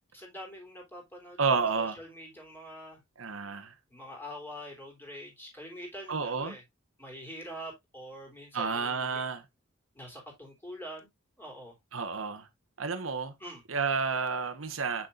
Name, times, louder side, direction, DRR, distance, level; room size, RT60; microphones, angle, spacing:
voice 1, 0.1-3.0 3.9-6.6 7.0-9.2 9.9-11.1 11.4-11.7 13.4-13.6, equal, 10° left, 3.4 m, -45 dB
voice 2, 1.4-2.0 3.2-3.7 6.1-6.6 8.5-9.4 11.9-12.5 12.8-13.3 13.7-15.1, right 5 dB, 85° right, 1.1 m, -30 dB
7.4 x 6.5 x 2.4 m
head